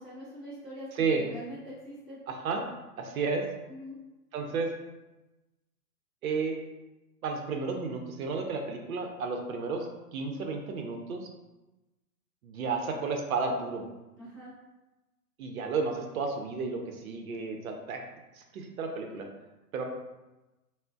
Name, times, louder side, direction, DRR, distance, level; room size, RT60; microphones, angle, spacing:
voice 1, 0.0-2.2 3.7-4.0 14.2-14.5, equal, 15° left, -16 dB, 0.3 m, -43 dB
voice 2, 0.9-1.3 2.3-2.7 3.0-3.4 4.3-4.7 6.2-6.6 7.2-11.3 12.4-13.8 15.4-18.0 18.4-19.3 19.7-19.8, right 4 dB, 60° right, 3 dB, 0.6 m, -32 dB
3.6 x 2.1 x 2.3 m, 1.0 s
hypercardioid pair, 125°, 48 cm